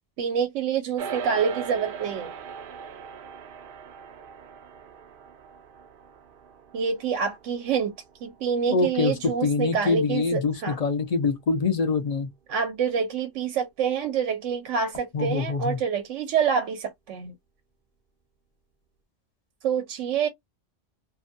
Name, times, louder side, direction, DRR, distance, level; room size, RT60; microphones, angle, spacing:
voice 1, 0.2-2.3 6.7-7.9 8.2-10.8 12.5-17.3 19.6-20.3, right 7 dB, 80° right, 0.9 m, -27 dB
sound 1, 1.0-10.5, right 6 dB, 60° right, 0.6 m, -40 dB
voice 2, 8.7-12.3 15.1-15.8, left 4 dB, 45° left, 0.5 m, -25 dB
2.6 x 2.1 x 2.6 m
omnidirectional pair, 1.3 m